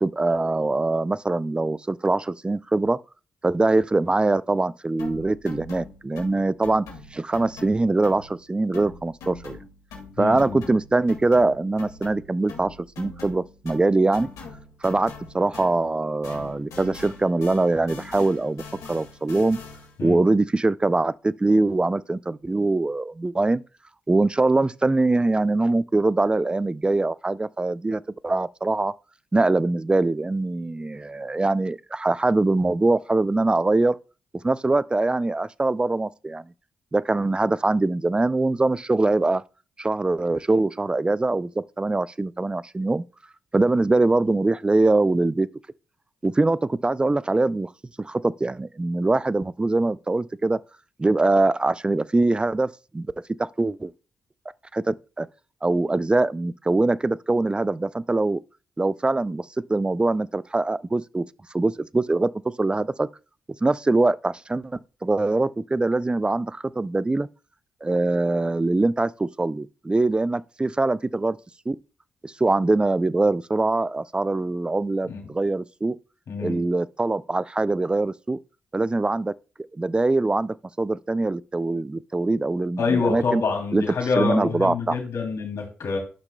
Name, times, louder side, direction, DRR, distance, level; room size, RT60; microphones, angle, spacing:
voice 1, 0.0-3.0 3.4-6.8 7.1-9.6 10.2-14.3 14.8-18.6 18.9-19.6 20.0-23.6 24.1-28.9 29.3-34.0 34.4-36.4 36.9-39.4 39.8-43.0 43.5-45.5 46.2-47.7 48.0-50.6 51.0-53.1 53.4-53.9 54.7-55.3 55.6-58.4 58.8-61.2 61.5-62.3 62.6-63.1 63.6-67.3 67.8-71.4 71.7-71.8 72.2-76.0 76.4-78.4 78.7-79.3 79.8-83.4 83.7-83.8 84.2-85.0, right 2 dB, 20° right, 0.4 m, -23 dB
sound 1, 5.0-8.5 8.7-20.0, left 3 dB, 85° left, 2.0 m, -42 dB
voice 2, 10.2-10.6 20.0-20.2 75.1-75.2 76.3-76.6 82.8-86.0, left 4 dB, 65° left, 3.0 m, -26 dB
11.5 x 5.9 x 2.2 m
supercardioid pair, 55°, 5 cm